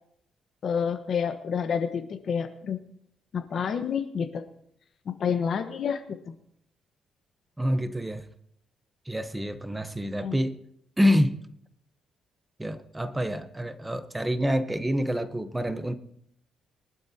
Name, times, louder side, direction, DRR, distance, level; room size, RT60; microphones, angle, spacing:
voice 1, 0.6-2.8 3.3-4.4 5.0-6.3 10.2-10.4, left 7 dB, 55° left, 9 dB, 1.2 m, -29 dB
voice 2, 7.6-8.2 9.1-10.6 11.0-11.4 12.6-16.0, equal, 10° right, 10 dB, 1.0 m, -27 dB
23.5 x 11.5 x 2.9 m, 0.69 s
cardioid pair, 90°, 0 cm